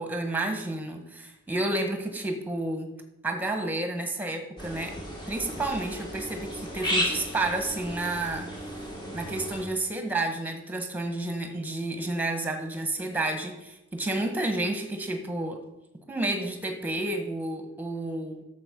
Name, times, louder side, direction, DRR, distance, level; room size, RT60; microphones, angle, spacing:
voice 1, 0.0-2.9 3.2-4.9 5.3-8.5 9.1-15.6 16.1-18.4, right 2 dB, 10° right, 5 dB, 1.5 m, -30 dB
sound 1, 4.6-9.6, equal, 20° left, 2.1 m, -34 dB
11.5 x 7.3 x 5.4 m, 0.98 s
head